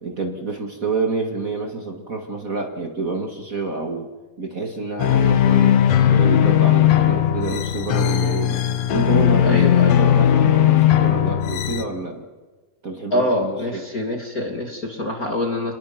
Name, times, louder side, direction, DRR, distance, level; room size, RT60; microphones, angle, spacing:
voice 1, 0.0-4.1 4.4-5.8 6.1-8.6 8.9-12.3 12.8-13.8, right 3 dB, 45° right, 3 dB, 1.1 m, -28 dB
sound 1, 5.0-11.8, left 10 dB, 70° left, 1.7 m, -17 dB
voice 2, 9.4-10.0 13.1-15.7, left 1 dB, 30° left, 2 dB, 1.9 m, -25 dB
27.0 x 21.0 x 5.8 m, 1.3 s
omnidirectional pair, 4.6 m